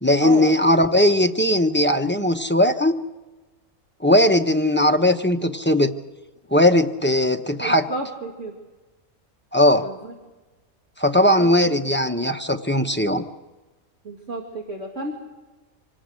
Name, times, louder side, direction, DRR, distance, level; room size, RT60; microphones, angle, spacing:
voice 1, 0.0-2.9 4.0-5.9 6.5-7.8 9.5-9.8 11.0-13.2, left 1 dB, 10° left, 7 dB, 0.6 m, -18 dB
voice 2, 7.6-8.5 9.8-10.1 11.1-11.5 14.0-15.1, right 2 dB, 60° right, 1 dB, 2.4 m, -31 dB
25.5 x 18.5 x 6.4 m, 1.2 s
omnidirectional pair, 1.5 m